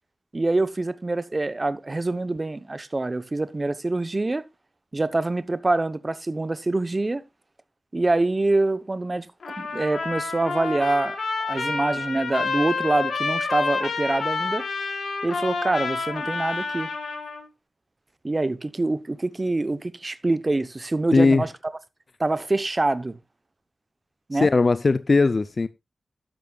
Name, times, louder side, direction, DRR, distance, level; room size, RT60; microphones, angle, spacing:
voice 1, 0.3-4.4 4.9-7.2 7.9-9.3 9.6-11.2 11.5-14.6 15.2-16.9 18.2-21.5 22.2-23.1 24.3-24.5, right 2 dB, 35° right, 0.8 m, -25 dB
Trumpet, 9.4-17.5, left 4 dB, 90° left, 2.5 m, -29 dB
voice 2, 21.1-21.4 24.3-25.7, left 3 dB, 50° left, 0.5 m, -19 dB
12.0 x 10.5 x 2.4 m
wide cardioid pair, 75°, 0 cm